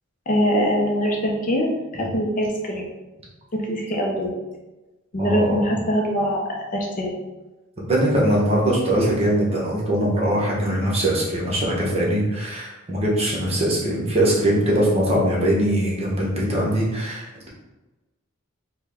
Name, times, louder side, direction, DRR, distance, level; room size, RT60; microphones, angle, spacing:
voice 1, 0.3-2.9 3.5-4.4 5.1-6.4 6.7-7.1, equal, 35° left, 0 dB, 0.5 m, -23 dB
voice 2, 5.2-5.7 7.8-17.5, right 1 dB, 30° right, -4 dB, 0.9 m, -21 dB
4.3 x 2.1 x 3.4 m, 1.1 s
head